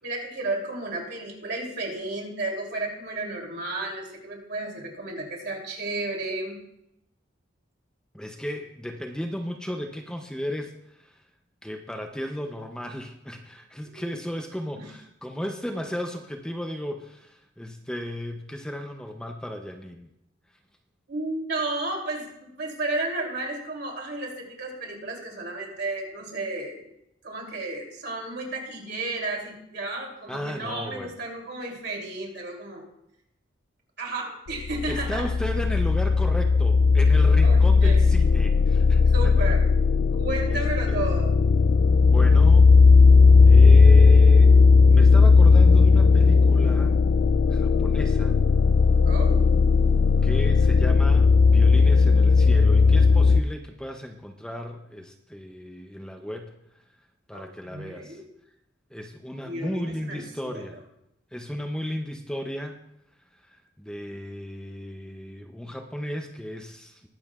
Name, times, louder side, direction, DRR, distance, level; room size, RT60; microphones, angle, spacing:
voice 1, 0.0-6.6 13.9-14.1 14.7-14.9 21.1-26.9 27.2-32.8 34.0-35.2 37.4-38.1 39.0-39.6 40.2-41.3 49.1-49.5 57.3-58.2 59.4-60.6, right 2 dB, 60° right, 0 dB, 2.9 m, -33 dB
voice 2, 8.1-11.2 11.6-20.1 30.3-31.1 34.9-39.6 40.5-41.1 42.0-42.8 43.4-44.6 44.9-47.1 47.5-48.4 50.2-56.5 57.3-58.2 58.9-60.8 61.3-62.8 63.3-67.1, equal, 5° left, 3 dB, 0.6 m, -35 dB
sound 1, 34.5-53.4, left 4 dB, 70° left, 0.4 m, -17 dB
21.0 x 7.7 x 2.4 m, 0.81 s
head